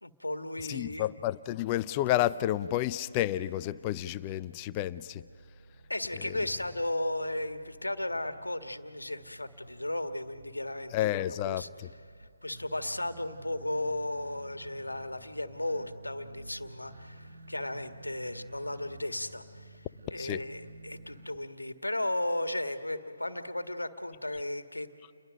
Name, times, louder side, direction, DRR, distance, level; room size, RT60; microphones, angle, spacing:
voice 1, 0.0-1.1 5.9-11.7 12.2-19.9 20.1-24.9, left 1 dB, 90° left, 8 dB, 1.5 m, -35 dB
voice 2, 0.6-5.3 6.1-6.5 10.9-11.9 20.2-20.4, left 14 dB, 25° left, 15 dB, 0.5 m, -31 dB
sound 1, 3.7-21.3, right 1 dB, 65° right, 2.0 m, -52 dB
29.5 x 22.0 x 5.2 m, 2.4 s
figure-of-eight pair, 145°, 0 cm